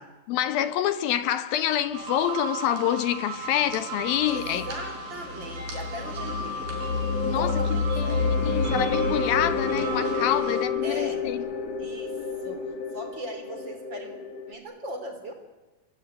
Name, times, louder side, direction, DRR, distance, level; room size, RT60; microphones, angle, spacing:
voice 1, 0.3-4.7 7.2-11.4, left 11 dB, 75° left, 2.8 m, -27 dB
sound 1, 1.9-10.6, right 2 dB, 70° right, 6.8 m, -36 dB
sound 2, 4.2-14.5, left 4 dB, 45° left, 3.2 m, -29 dB
voice 2, 4.2-6.8 7.4-8.4 10.8-11.3 11.8-12.7 12.9-14.1 14.5-15.3, right 1 dB, 30° right, 3.8 m, -38 dB
30.0 x 21.5 x 8.9 m
omnidirectional pair, 4.4 m